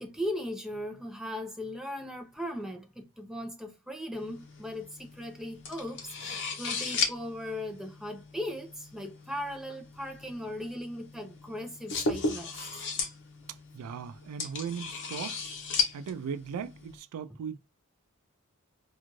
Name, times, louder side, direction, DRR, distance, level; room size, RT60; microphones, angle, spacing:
voice 1, 0.0-12.8, left 1 dB, ahead, 0.6 m, -38 dB
sound 1, 4.1-17.0, left 4 dB, 55° left, 0.8 m, -36 dB
voice 2, 13.7-15.5 15.9-17.6, right 7 dB, 90° right, 0.3 m, -38 dB
2.5 x 2.4 x 2.9 m
head